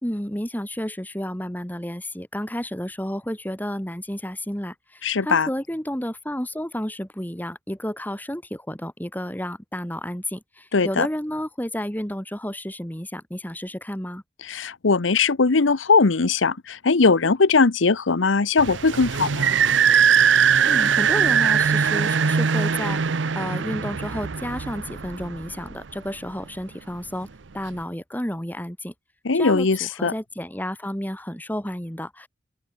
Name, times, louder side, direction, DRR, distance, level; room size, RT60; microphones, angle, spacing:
voice 1, 0.0-14.2 20.7-23.0 23.3-27.3 27.5-28.9 29.3-32.3, equal, 10° left, 2.8 m, -31 dB
voice 2, 5.0-5.5 10.7-11.1 14.5-19.6 29.2-30.1, left 4 dB, 80° left, 0.9 m, -20 dB
sound 1, 18.6-25.9, right 7 dB, 70° right, 0.7 m, -21 dB
open air
head